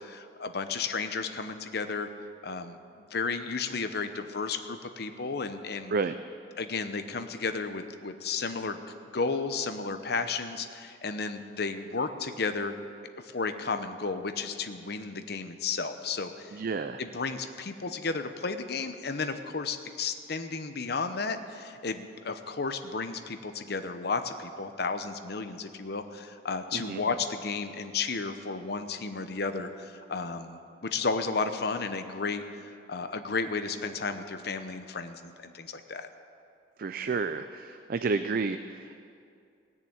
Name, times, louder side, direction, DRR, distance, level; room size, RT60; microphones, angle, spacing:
voice 1, 0.0-2.1 2.4-5.9 6.6-8.8 9.1-12.7 13.2-16.6 17.0-36.1, left 4 dB, 60° left, 8 dB, 0.9 m, -33 dB
voice 2, 16.5-17.0 26.7-27.0 36.8-39.0, right 4 dB, 55° right, 10 dB, 0.4 m, -31 dB
18.5 x 6.9 x 8.7 m, 2.4 s
head